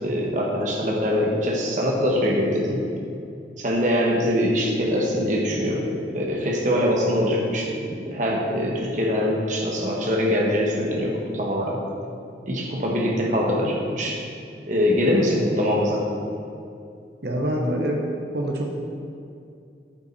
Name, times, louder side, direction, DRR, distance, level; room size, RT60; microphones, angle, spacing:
voice 1, 0.0-2.8 3.6-5.9 6.1-11.8 12.5-14.2 14.7-16.1, equal, 45° right, -2 dB, 1.5 m, -23 dB
voice 2, 17.2-18.0 18.3-18.8, equal, 60° right, 0 dB, 1.0 m, -25 dB
9.0 x 8.9 x 4.1 m, 2.5 s
head